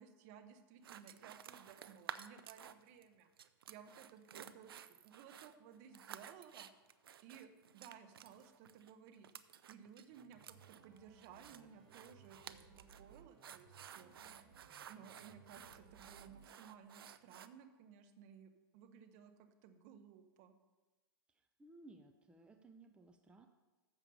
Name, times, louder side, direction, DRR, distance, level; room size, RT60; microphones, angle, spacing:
voice 1, 0.0-3.3 3.7-6.7 7.2-14.5 14.9-20.5, right 8 dB, 45° right, 8 dB, 1.0 m, -58 dB
sound 1, 0.8-3.0 3.4-17.5, right 9 dB, 85° right, 0.5 m, -54 dB
sound 2, 10.1-16.5, right 5 dB, 65° right, 2.8 m, -63 dB
voice 2, 21.3-23.5, right 2 dB, 10° right, 6 dB, 0.5 m, -60 dB
7.2 x 6.9 x 6.7 m, 1.2 s
hypercardioid pair, 125°, 12 cm